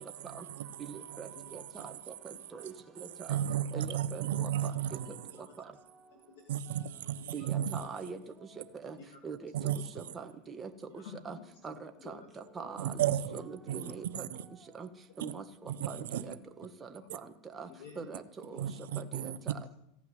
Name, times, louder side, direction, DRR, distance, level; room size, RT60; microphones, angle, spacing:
voice 1, 0.9-1.9 2.5-2.7 3.3-3.4 3.7-4.5 7.3-8.2 8.8-9.0 9.2-9.5 9.9-10.7 11.2-11.4 11.6-12.2 12.5-12.9 13.3-14.3 14.7-14.9 15.2-15.4 15.9-16.9 17.5-17.7 18.0-18.6 19.0-19.3, right 5 dB, 20° right, 1.4 m, -43 dB
voice 2, 3.3-5.1 6.5-7.2 7.4-7.7 9.5-9.8 12.8-13.4 13.7-13.8 14.1-14.4 15.8-16.2 18.6-19.4, right 10 dB, 80° right, 0.8 m, -33 dB
voice 3, 6.1-7.9 9.1-9.2 9.5-9.9 10.8-12.3 13.8-14.0 15.6-15.7 16.1-16.2 17.0-17.1 17.6-18.1 18.4-18.6 18.9-19.0 19.3-19.7, left 6 dB, 75° left, 2.0 m, -54 dB
16.0 x 5.8 x 9.4 m
hypercardioid pair, 110°, 0 cm